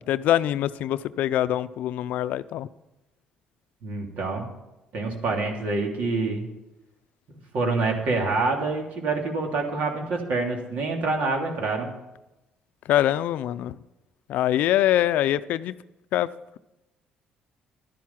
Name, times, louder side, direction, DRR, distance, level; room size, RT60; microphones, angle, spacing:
voice 1, 0.0-2.7 12.9-13.7 14.3-15.7 16.1-16.3, left 12 dB, 75° left, 0.5 m, -24 dB
voice 2, 3.8-4.5 4.9-6.5 7.3-11.9, right 3 dB, 65° right, 3.1 m, -26 dB
12.0 x 10.5 x 5.8 m
cardioid pair, 85°, 3 cm